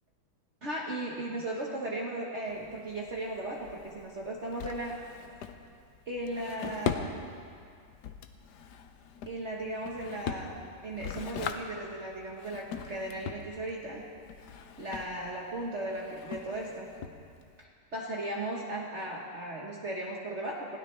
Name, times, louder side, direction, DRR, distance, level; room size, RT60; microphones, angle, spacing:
voice 1, 0.6-5.0 6.1-7.2 9.3-14.0 14.8-16.9 17.6-20.8, right 1 dB, 45° right, -2 dB, 1.5 m, -36 dB
Drawer open or close, 2.5-17.6, left 7 dB, 75° left, 1.3 m, -41 dB
21.0 x 16.0 x 3.3 m, 2.3 s
omnidirectional pair, 1.9 m